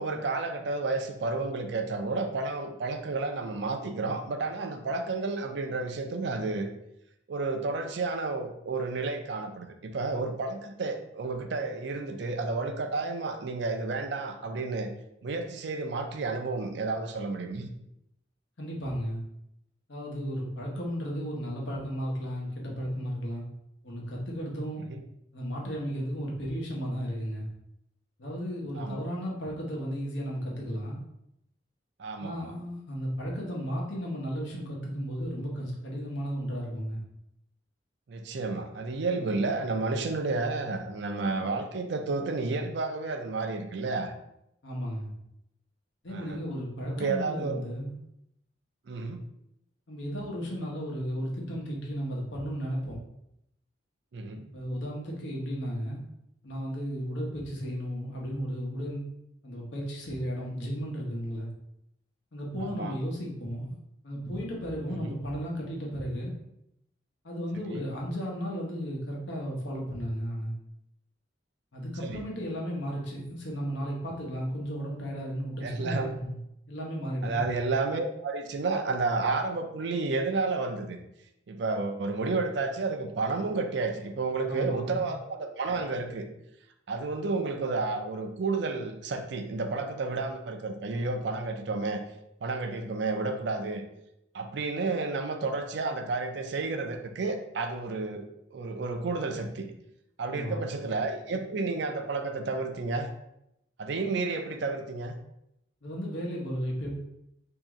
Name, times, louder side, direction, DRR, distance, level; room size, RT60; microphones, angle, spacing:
voice 1, 0.0-6.7 7.3-14.9 15.2-17.7 24.9-25.0 28.8-29.0 32.0-32.5 38.1-44.1 46.1-46.4 47.0-47.6 48.9-49.2 54.1-54.4 62.6-62.9 64.9-65.2 67.7-67.9 72.0-72.2 75.6-76.2 77.2-81.0 81.5-86.3 86.9-92.0 92.4-93.8 94.3-98.3 98.5-99.7 100.2-103.1 103.8-105.1, right 3 dB, 65° right, 6 dB, 0.4 m, -31 dB
voice 2, 18.6-19.2 19.9-23.4 23.8-24.8 25.3-27.5 28.2-31.0 32.2-37.0 44.6-45.1 46.0-47.9 49.9-53.0 54.5-56.0 56.4-59.0 59.4-61.5 62.3-63.8 64.0-66.3 67.2-70.5 71.7-76.4 76.7-77.4 84.5-85.1 100.3-100.7 105.8-106.9, equal, 70° left, -2 dB, 0.9 m, -34 dB
3.0 x 2.8 x 3.6 m, 0.81 s
head